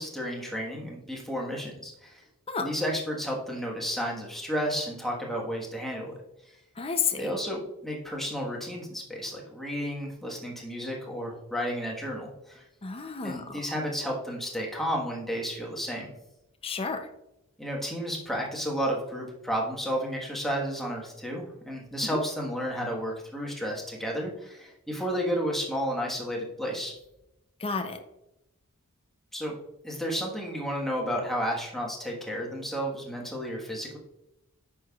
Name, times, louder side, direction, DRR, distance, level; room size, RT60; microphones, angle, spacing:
voice 1, 0.0-2.2 2.6-6.2 6.4-6.6 7.2-12.6 13.2-16.1 17.6-26.9 29.3-29.6 29.8-34.0, equal, ahead, -2 dB, 1.4 m, -32 dB
voice 2, 6.8-7.3 12.8-13.6 16.6-17.1 22.1-22.2 27.6-28.0, left 5 dB, 25° left, 7 dB, 0.6 m, -31 dB
9.0 x 6.2 x 2.4 m, 0.88 s
head